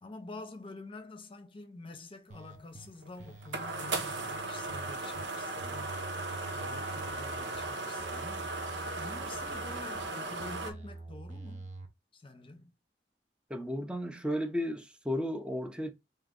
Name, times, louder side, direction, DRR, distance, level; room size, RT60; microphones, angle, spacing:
voice 1, 0.0-6.0 6.5-8.5 9.0-11.7 12.1-12.7, left 2 dB, 30° left, 0.8 m, -47 dB
sound 1, 2.3-2.9 3.2-5.2 5.6-7.7 8.0-10.0 10.4-11.9, right 2 dB, 40° right, 0.7 m, -46 dB
sound 2, 2.7-10.7, right 2 dB, 85° right, 0.9 m, -37 dB
voice 2, 13.5-15.9, equal, 5° right, 0.7 m, -34 dB
3.9 x 2.8 x 3.8 m
head